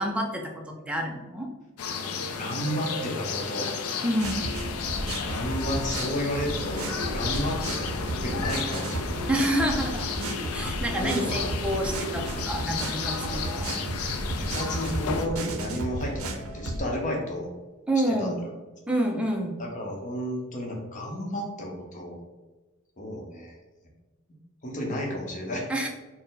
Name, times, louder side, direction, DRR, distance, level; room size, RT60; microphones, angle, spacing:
voice 1, 0.0-1.5 4.0-4.4 9.3-10.2 10.5-13.8 17.9-18.4 18.9-19.6 25.7-25.9, right 1 dB, 5° right, 1 dB, 0.4 m, -28 dB
sound 1, 1.8-15.3, left 5 dB, 85° left, 0.4 m, -33 dB
voice 2, 2.4-3.7 5.0-9.5 10.9-12.5 13.0-17.5 18.0-18.5 19.6-22.2 23.0-23.5 24.6-25.7, equal, 35° left, -1 dB, 0.8 m, -33 dB
sound 2, 4.2-16.8, right 2 dB, 75° right, 0.5 m, -33 dB
4.1 x 2.1 x 4.0 m, 1.2 s
head